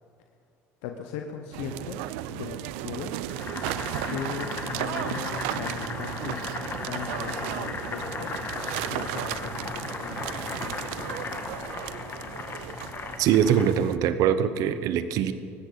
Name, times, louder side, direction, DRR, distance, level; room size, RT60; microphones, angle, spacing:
voice 1, 0.8-2.0 2.3-3.2 4.1-8.3 8.9-11.3, left 8 dB, 85° left, 4 dB, 1.0 m, -38 dB
sound 1, 1.5-14.0, right 14 dB, 85° right, 0.5 m, -35 dB
Boiling, 3.3-13.9, left 4 dB, 35° left, 1.6 m, -36 dB
voice 2, 13.2-15.3, right 9 dB, 70° right, 12 dB, 1.0 m, -23 dB
19.5 x 15.0 x 4.1 m, 2.6 s
supercardioid pair, 85°, 7 cm